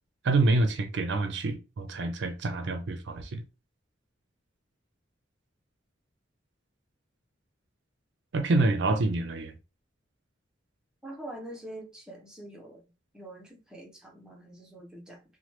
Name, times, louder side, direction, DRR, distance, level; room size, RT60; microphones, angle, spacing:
voice 1, 0.2-3.4 8.3-9.5, right 2 dB, 65° right, 0.5 m, -27 dB
voice 2, 11.0-12.8 13.1-15.2, right 1 dB, 5° right, 0.6 m, -44 dB
2.9 x 2.2 x 3.1 m
head